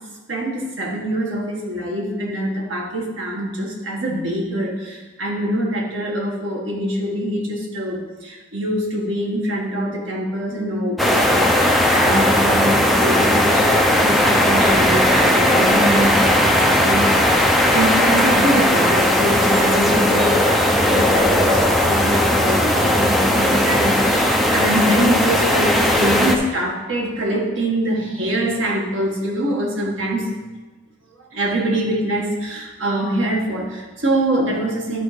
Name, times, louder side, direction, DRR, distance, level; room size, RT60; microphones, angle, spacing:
voice 1, 0.3-30.3 31.3-35.0, right 1 dB, 85° right, -1 dB, 1.7 m, -24 dB
sound 1, 11.0-26.4, left 1 dB, ahead, 0.7 m, -17 dB
11.0 x 4.4 x 5.1 m, 1.2 s
head